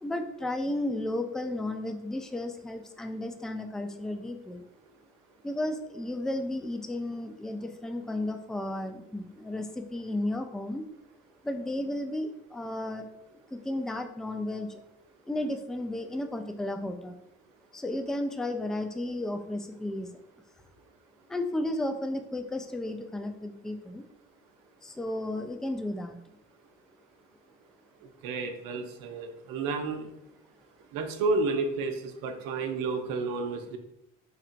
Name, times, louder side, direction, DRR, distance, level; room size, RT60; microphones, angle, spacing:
voice 1, 0.0-4.6 5.4-10.8 11.4-13.1 13.5-14.8 15.3-17.2 17.7-20.1 21.3-24.0 24.8-26.2, left 1 dB, ahead, 6 dB, 0.4 m, -33 dB
voice 2, 28.2-30.1 30.9-33.8, right 3 dB, 75° right, 6 dB, 0.6 m, -31 dB
4.5 x 2.8 x 2.5 m, 0.83 s
hypercardioid pair, 60°, 34 cm